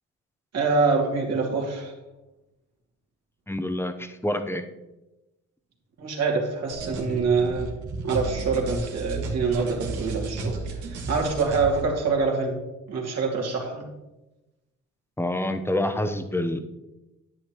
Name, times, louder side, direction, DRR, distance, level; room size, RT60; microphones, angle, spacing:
voice 1, 0.5-1.9 6.0-7.7 8.0-10.6 10.9-12.6 12.9-13.8, right 4 dB, 60° right, 0 dB, 2.6 m, -25 dB
voice 2, 3.5-4.6 15.2-16.6, left 1 dB, 10° left, 7 dB, 0.8 m, -27 dB
sound 1, 6.7-11.8, right 3 dB, 80° right, 1.9 m, -33 dB
10.0 x 8.6 x 3.0 m, 0.99 s
cardioid pair, 90°, 30 cm